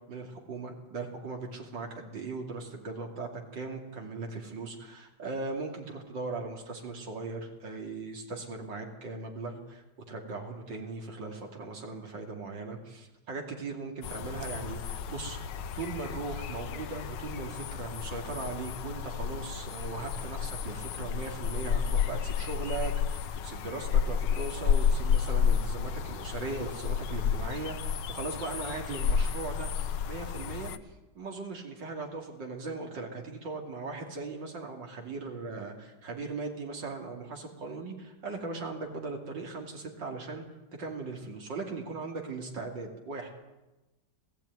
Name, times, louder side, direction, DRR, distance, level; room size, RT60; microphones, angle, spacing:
voice 1, 0.1-15.5 15.8-29.7 30.1-40.4 40.8-43.3, right 3 dB, 85° right, 1 dB, 3.4 m, -39 dB
sound 1, 14.0-30.8, left 7 dB, 75° left, 1.5 m, -31 dB
19.5 x 15.0 x 9.5 m, 1.1 s
omnidirectional pair, 1.9 m